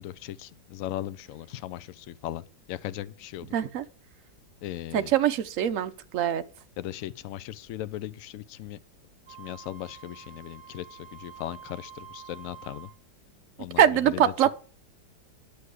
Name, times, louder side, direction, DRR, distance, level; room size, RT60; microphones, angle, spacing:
voice 1, 0.0-2.4 2.7-3.5 4.6-5.1 6.8-8.8 9.4-12.9 13.6-14.3, left 13 dB, 80° left, 0.7 m, -38 dB
voice 2, 3.5-3.9 4.9-6.4 13.8-14.5, right 10 dB, 65° right, 0.8 m, -23 dB
Wind instrument woodwind instrument, 9.3-13.0, right 8 dB, 15° right, 2.5 m, -48 dB
9.6 x 6.8 x 4.7 m
omnidirectional pair, 2.0 m